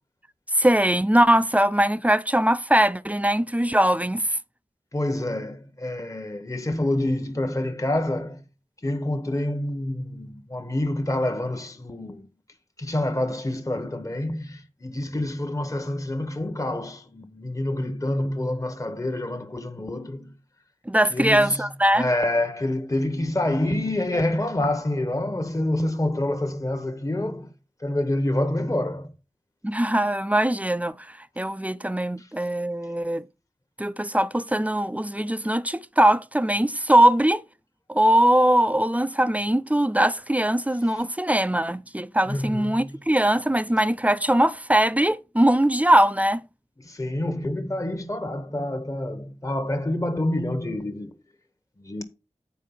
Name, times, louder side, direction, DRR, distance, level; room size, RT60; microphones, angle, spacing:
voice 1, 0.5-4.4 20.9-22.1 29.6-33.2 33.8-37.4 37.9-46.4, right 1 dB, 10° right, 0.5 m, -21 dB
voice 2, 4.9-8.4 8.8-12.3 12.8-20.3 21.1-21.6 21.9-27.5 27.8-29.1 32.2-32.3 42.3-43.0 46.8-51.2 51.8-52.0, left 1 dB, 25° left, 1.1 m, -27 dB
8.4 x 4.5 x 5.7 m
wide cardioid pair, 60°, 13 cm